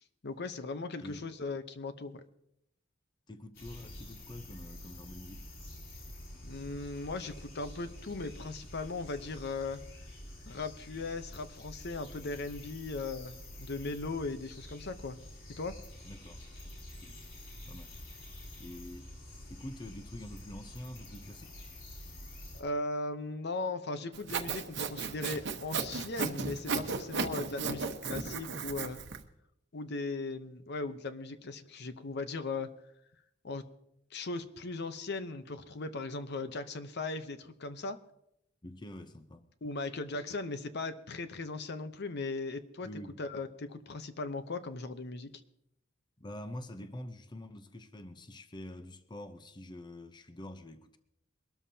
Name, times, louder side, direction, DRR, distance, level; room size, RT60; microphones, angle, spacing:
voice 1, 0.2-2.2 6.4-9.8 10.5-15.2 15.6-15.8 22.5-29.0 29.7-32.7 33.4-33.7 34.1-38.0 39.6-42.9 43.2-45.4, left 3 dB, 60° left, 0.8 m, -38 dB
voice 2, 3.3-5.5 16.0-16.4 16.9-17.2 17.7-17.9 18.6-19.1 19.5-21.6 38.6-39.5 42.8-43.2 46.2-51.0, left 1 dB, 20° left, 0.7 m, -46 dB
sound 1, 3.5-22.6, left 1 dB, 85° left, 4.2 m, -48 dB
Sawing, 24.1-29.2, right 5 dB, 65° right, 1.1 m, -35 dB
23.0 x 13.0 x 2.8 m
head